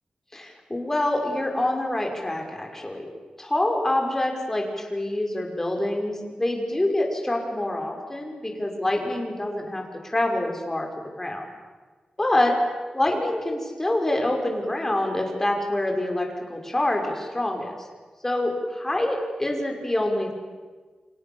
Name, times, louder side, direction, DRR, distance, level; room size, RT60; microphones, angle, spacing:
voice 1, 0.3-3.1 3.4-10.9 11.2-11.4 12.2-12.6 12.9-17.8 18.2-20.3, left 1 dB, 15° left, 2 dB, 5.9 m, -26 dB
29.5 x 26.5 x 7.3 m, 1.4 s
wide cardioid pair, 110°, 2 cm